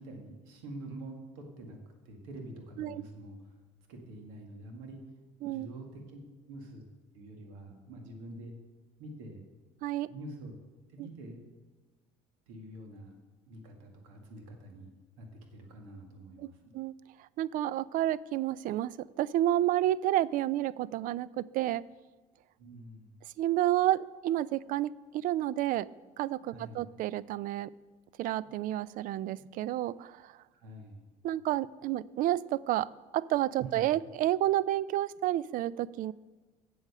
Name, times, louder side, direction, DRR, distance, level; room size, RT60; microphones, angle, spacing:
voice 1, 0.0-1.8 2.1-3.4 3.9-5.0 5.4-6.2 6.5-6.9 7.1-8.5 9.0-9.4 10.0-10.5 10.9-11.5 12.5-13.2 13.5-14.9 15.2-16.7 22.6-23.1 26.5-26.8 30.5-31.0 33.6-33.9, right 1 dB, 80° right, 3 dB, 1.9 m, -46 dB
voice 2, 9.8-10.1 16.4-16.5 16.7-16.9 17.4-21.8 23.4-25.9 26.2-27.7 28.2-30.3 31.2-36.1, right 13 dB, 55° right, 21 dB, 0.4 m, -30 dB
8.0 x 7.9 x 6.7 m, 1.3 s
hypercardioid pair, 75°, 16 cm